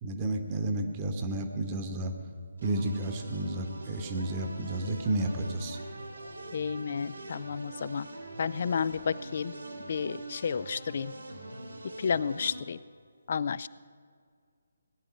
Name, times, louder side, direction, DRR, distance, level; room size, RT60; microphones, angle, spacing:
voice 1, 0.0-2.1 2.6-5.8, right 1 dB, 25° right, 5 dB, 1.1 m, -31 dB
sound 1, 2.6-12.6, right 2 dB, 70° right, 2.4 m, -43 dB
voice 2, 6.5-8.1 8.4-9.5 9.9-11.1 12.0-12.8 13.3-13.7, left 6 dB, 45° left, 19 dB, 0.4 m, -31 dB
19.0 x 9.9 x 5.1 m, 2.1 s
figure-of-eight pair, 145°, 0 cm